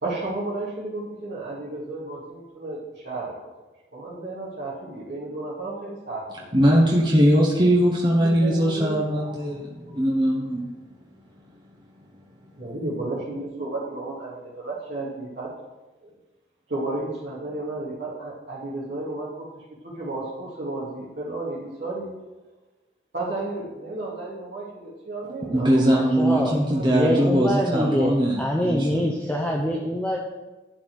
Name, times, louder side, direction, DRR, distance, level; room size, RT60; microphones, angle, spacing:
voice 1, 0.0-3.5 3.9-6.3 6.7-6.8 8.2-10.1 12.6-15.5 16.0-16.1 16.7-22.1 23.1-26.0 26.3-26.4 26.7-27.9, right 2 dB, 70° right, -8 dB, 2.5 m, -33 dB
voice 2, 6.5-10.7 11.2-11.6 25.5-28.9, equal, 25° right, -2 dB, 1.1 m, -21 dB
voice 3, 25.9-30.2, equal, 10° left, -1 dB, 0.8 m, -25 dB
11.5 x 4.3 x 7.9 m, 1.1 s
head